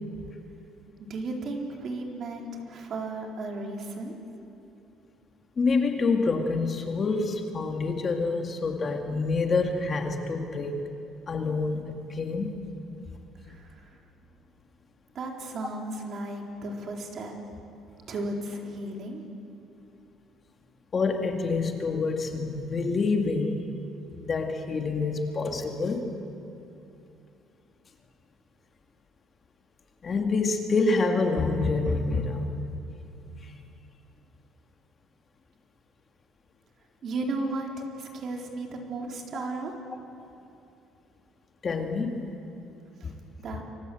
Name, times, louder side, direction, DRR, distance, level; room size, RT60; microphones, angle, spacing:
voice 1, 1.1-4.1 13.5-13.9 15.1-17.3 18.1-19.2 37.0-40.0 43.0-43.1 43.4-43.6, right 2 dB, 45° right, 2 dB, 4.0 m, -35 dB
voice 2, 5.6-10.7 11.3-12.6 20.9-23.6 24.2-26.1 30.0-32.5 33.4-33.5 41.6-42.3 43.0-43.1, left 3 dB, 30° left, 4 dB, 2.1 m, -27 dB
29.0 x 25.0 x 7.9 m, 2.8 s
cardioid pair, 150°, 0 cm